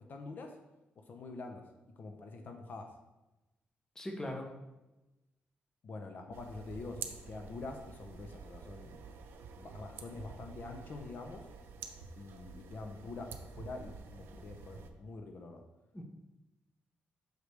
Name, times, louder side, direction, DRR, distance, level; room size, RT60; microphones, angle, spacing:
voice 1, 0.1-0.5 1.0-1.6 2.0-2.9 5.8-9.0 9.6-11.4 12.2-15.6, left 3 dB, 55° left, 4 dB, 0.7 m, -45 dB
voice 2, 4.0-4.5 15.9-16.0, left 1 dB, 15° left, 2 dB, 0.8 m, -39 dB
sound 1, 6.3-14.9, right 5 dB, 75° right, 0.5 m, -49 dB
6.5 x 4.9 x 3.3 m, 1.0 s
cardioid pair, 120°, 4 cm